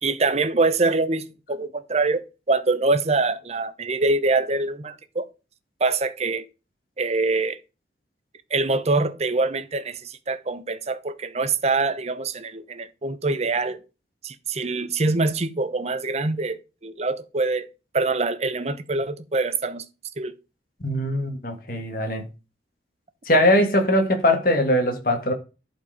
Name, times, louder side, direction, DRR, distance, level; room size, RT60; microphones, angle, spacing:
voice 1, 0.0-5.3 5.8-6.4 7.0-7.6 8.5-13.8 14.2-17.7 17.9-19.8 20.2-20.3, right 3 dB, 35° right, 0.8 m, -24 dB
voice 2, 20.8-22.2 23.3-25.3, left 1 dB, 50° left, 1.8 m, -21 dB
11.5 x 4.6 x 5.0 m
head